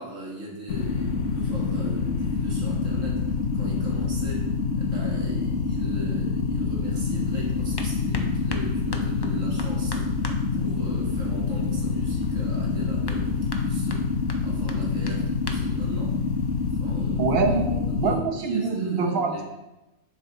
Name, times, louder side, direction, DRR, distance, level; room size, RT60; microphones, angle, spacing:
voice 1, 0.0-10.3 10.5-16.2 16.7-17.4 17.9-19.4, right 1 dB, 85° right, -3 dB, 2.1 m, -39 dB
sound 1, 0.7-18.1, left 4 dB, 75° left, 1.1 m, -26 dB
sound 2, 6.9-16.7, left 3 dB, 35° left, 0.4 m, -42 dB
voice 2, 17.2-19.4, right 4 dB, 55° right, 4 dB, 1.0 m, -25 dB
7.5 x 6.3 x 3.0 m, 1.0 s
omnidirectional pair, 1.3 m